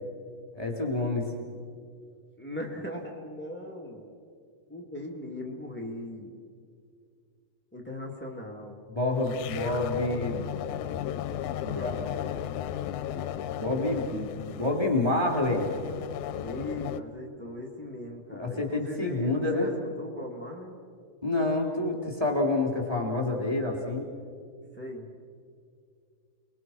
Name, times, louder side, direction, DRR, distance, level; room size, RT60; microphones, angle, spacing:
voice 1, 0.5-1.3 8.9-10.5 11.6-12.0 13.1-13.3 13.5-15.7 18.4-19.7 21.2-24.1, left 2 dB, 10° right, 0 dB, 3.2 m, -28 dB
voice 2, 2.4-4.1 4.7-6.3 7.7-8.8 16.4-20.8 24.7-25.1, left 1 dB, 15° left, 0 dB, 0.4 m, -39 dB
sound 1, 9.3-17.0, left 11 dB, 75° left, 1.9 m, -35 dB
28.0 x 21.0 x 6.1 m, 2.2 s
omnidirectional pair, 3.9 m